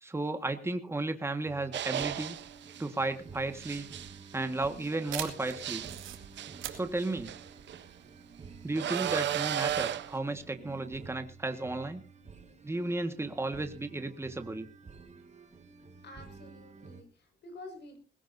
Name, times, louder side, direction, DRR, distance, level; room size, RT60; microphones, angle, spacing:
voice 1, 0.0-2.4 2.8-3.9 4.3-5.8 6.7-7.3 8.6-12.0 12.6-14.7, right 2 dB, 10° right, 7 dB, 1.7 m, -34 dB
sound 1, 1.4-17.0, right 5 dB, 35° right, 2.6 m, -51 dB
sound 2, 1.7-2.9 3.6-7.8 8.8-10.2, right 11 dB, 65° right, 1.0 m, -35 dB
sound 3, 3.2-8.4, right 12 dB, 90° right, 2.3 m, -43 dB
voice 2, 16.0-18.0, left 2 dB, 60° left, 6 dB, 6.0 m, -49 dB
20.5 x 16.5 x 2.7 m, 0.36 s
cardioid pair, 90°, 20 cm